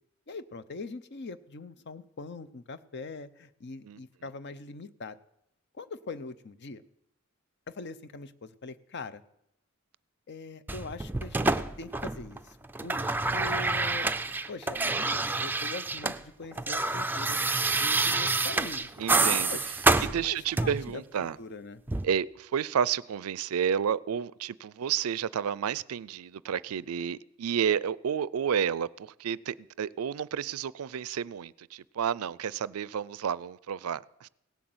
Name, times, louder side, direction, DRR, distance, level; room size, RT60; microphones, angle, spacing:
voice 1, 0.3-5.2 5.7-6.8 7.7-9.2 10.3-12.6 12.8-13.0 13.3-14.1 14.5-17.4 17.8-18.9 19.3-21.8, left 3 dB, 50° left, 0.7 m, -42 dB
sound 1, 10.7-12.4 12.6-16.2 16.4-20.9 21.9-22.1, right 3 dB, 10° right, 0.4 m, -28 dB
voice 2, 19.0-19.6 20.0-21.4 22.0-34.3, right 8 dB, 90° right, 0.4 m, -31 dB
17.5 x 8.1 x 7.8 m
head